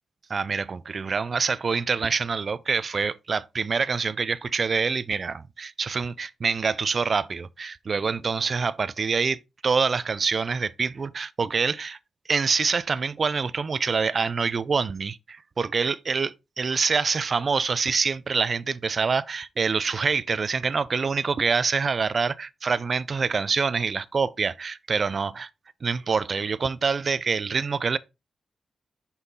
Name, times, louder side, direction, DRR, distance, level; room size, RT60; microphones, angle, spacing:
voice 1, 0.3-12.0 12.3-25.5 25.8-28.0, right 5 dB, 50° right, 0.4 m, -26 dB
5.9 x 5.6 x 3.9 m
cardioid pair, 70°, 0 cm